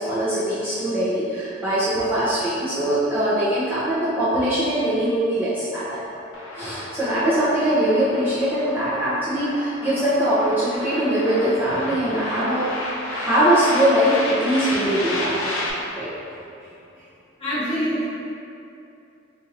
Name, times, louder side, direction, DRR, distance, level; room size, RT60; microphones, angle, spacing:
voice 1, 0.0-6.2 6.6-12.7 13.0-15.5 16.0-16.1, right 1 dB, 10° right, -13 dB, 0.6 m, -22 dB
sound 1, 6.3-15.7, left 1 dB, 80° left, 0.5 m, -32 dB
voice 2, 17.4-18.1, equal, 30° left, -11 dB, 1.1 m, -24 dB
2.7 x 2.5 x 4.1 m, 2.7 s
head